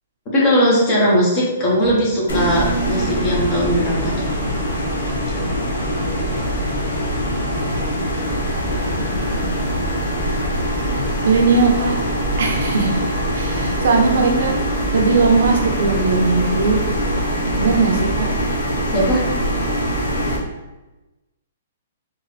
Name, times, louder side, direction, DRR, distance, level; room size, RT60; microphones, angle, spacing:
voice 1, 0.3-4.3 18.9-19.2, equal, 35° left, -5 dB, 1.2 m, -18 dB
sound 1, 2.3-20.4, equal, 85° left, 1.0 m, -22 dB
voice 2, 11.2-12.0 12.4-13.0 13.3-14.5 14.9-16.8 17.6-18.3, right 4 dB, 70° right, 1 dB, 0.8 m, -18 dB
3.8 x 2.5 x 3.2 m, 1.0 s
hypercardioid pair, 145°, 0 cm